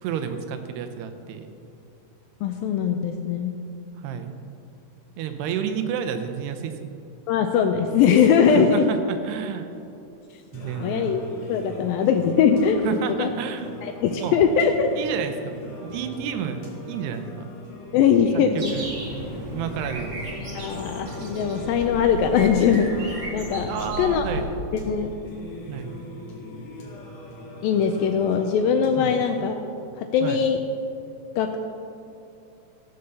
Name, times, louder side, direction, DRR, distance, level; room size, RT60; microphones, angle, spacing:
voice 1, 0.0-1.5 4.0-4.3 5.2-6.9 8.5-9.7 10.5-11.1 12.8-13.7 14.2-14.4 15.0-16.6 16.9-17.3 18.5-18.9 19.5-20.2 23.6-24.5 25.7-25.9 29.0-29.2 30.2-30.4, right 8 dB, 85° right, 8 dB, 2.8 m, -30 dB
voice 2, 2.4-3.5 7.3-9.0 10.8-11.2 11.5-13.3 13.8-14.9 17.9-18.8 20.6-24.2 24.9-25.2 27.6-29.6 30.0-30.6 31.4-31.6, left 7 dB, 90° left, 5 dB, 2.1 m, -21 dB
Singing, 10.5-29.5, left 1 dB, 50° left, 2.6 m, -41 dB
sound 1, 18.6-24.5, equal, 35° right, 1.9 m, -34 dB
15.0 x 6.8 x 6.7 m, 2.7 s
omnidirectional pair, 4.7 m